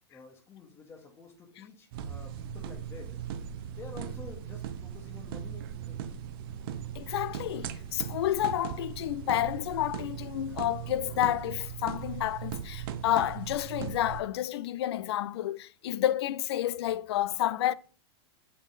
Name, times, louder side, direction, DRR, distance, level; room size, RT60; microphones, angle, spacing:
voice 1, 0.1-3.2 3.7-6.1, left 4 dB, 20° left, 1.2 m, -49 dB
sound 1, 1.9-14.2, right 9 dB, 60° right, 0.6 m, -39 dB
voice 2, 7.0-17.7, left 13 dB, 75° left, 0.4 m, -30 dB
6.0 x 4.2 x 3.9 m
hypercardioid pair, 130°, 14 cm